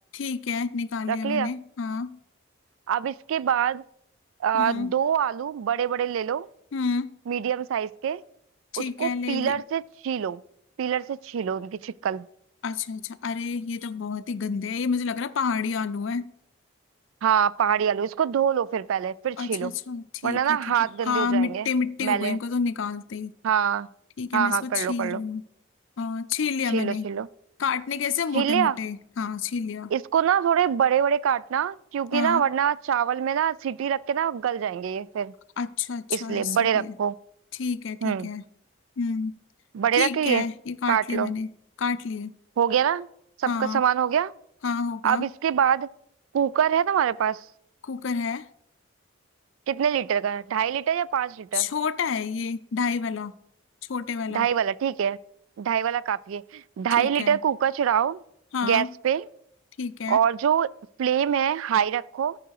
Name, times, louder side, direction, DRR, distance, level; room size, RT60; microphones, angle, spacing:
voice 1, 0.1-2.2 4.5-5.0 6.7-7.1 8.7-9.6 12.6-16.3 19.4-20.6 21.0-23.3 24.2-25.4 26.0-27.1 27.6-29.9 32.1-32.4 35.6-36.9 37.6-38.4 39.0-39.4 40.0-41.5 41.8-42.3 43.5-43.8 44.6-45.3 47.8-48.5 51.5-53.3 53.9-54.5 57.0-57.4 58.5-58.9 59.8-60.2, left 5 dB, 65° left, 0.5 m, -29 dB
voice 2, 1.1-1.5 2.9-3.8 4.4-6.5 7.3-8.2 8.8-10.4 10.8-12.3 17.2-19.7 20.2-21.7 22.0-22.4 23.4-23.9 24.3-25.2 26.7-27.3 28.3-28.8 29.9-35.3 36.1-37.1 38.0-38.3 39.7-40.5 40.9-41.3 42.6-43.1 43.4-44.3 45.0-45.9 46.3-47.4 49.7-51.7 54.3-55.2 55.6-58.2 58.6-59.3 60.1-60.7 61.0-62.4, right 8 dB, 75° right, 0.3 m, -25 dB
13.5 x 5.0 x 4.7 m
head